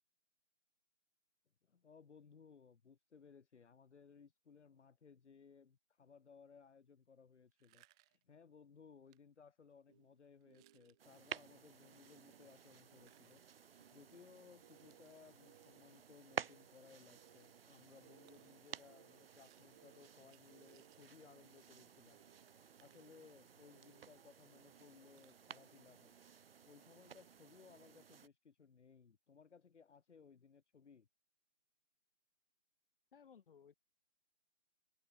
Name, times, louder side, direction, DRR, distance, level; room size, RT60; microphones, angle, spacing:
voice 1, 1.6-13.4 13.7-26.2 26.6-31.1, left 6 dB, 70° left, 1.6 m, -63 dB
sound 1, 7.5-8.3 9.1-9.2 9.7-9.9 10.4-11.5 12.4-14.0 14.9-15.2 16.4-16.5 17.3-17.5 18.3-18.6 19.4-21.3 21.6-21.7 21.9-22.0 22.3-23.7 24.2-24.3 24.6-24.7 25.1-25.5, right 21 dB, 5° right, 0.7 m, -74 dB
sound 2, 9.9-25.2, right 10 dB, 25° right, 1.4 m, -70 dB
sound 3, 11.0-28.3, right 7 dB, 50° right, 0.9 m, -53 dB
voice 2, 33.1-33.7, left 7 dB, 50° left, 1.6 m, -61 dB
hypercardioid pair, 160°, 36 cm